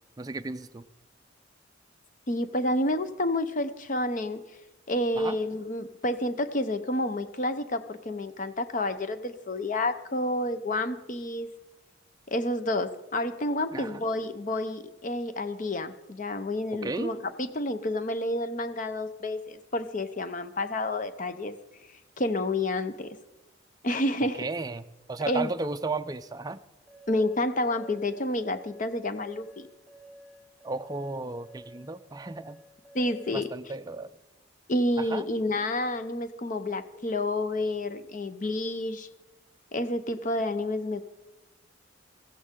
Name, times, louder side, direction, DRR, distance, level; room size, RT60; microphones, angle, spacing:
voice 1, 0.2-0.8 5.2-5.4 13.7-14.0 16.8-17.2 24.4-26.6 30.6-32.6 33.3-34.1 35.1-35.3, right 3 dB, 20° right, 9 dB, 0.4 m, -34 dB
voice 2, 2.3-4.5 4.9-11.5 12.3-21.6 22.2-23.2 23.8-24.4 25.3-25.5 27.1-29.7 32.9-33.5 34.7-39.1 39.7-41.0, left 1 dB, 40° left, 11 dB, 0.8 m, -29 dB
sound 1, 26.9-33.4, right 1 dB, 5° left, 4.8 m, -51 dB
16.0 x 15.0 x 3.7 m, 1.0 s
head